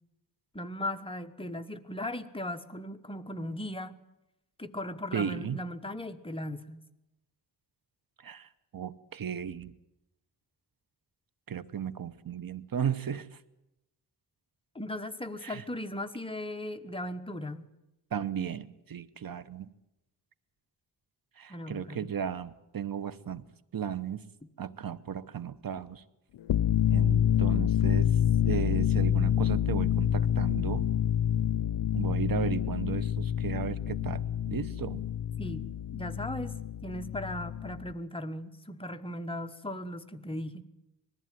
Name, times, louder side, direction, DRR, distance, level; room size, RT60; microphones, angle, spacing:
voice 1, 0.5-3.9 4.6-6.8 14.7-17.6 21.5-22.1 35.4-35.6 35.9-36.5 36.8-40.6, left 1 dB, 15° left, 7 dB, 1.1 m, -37 dB
voice 2, 5.1-5.6 8.2-9.7 11.5-13.4 15.4-15.6 18.1-19.7 21.4-23.4 23.7-24.2 24.6-26.0 26.9-28.1 28.5-30.8 31.9-35.0, right 8 dB, 55° right, 15 dB, 1.0 m, -35 dB
sound 1, 26.4-37.9, left 10 dB, 80° left, 0.6 m, -27 dB
20.0 x 14.5 x 9.3 m, 0.93 s
wide cardioid pair, 105°, 41 cm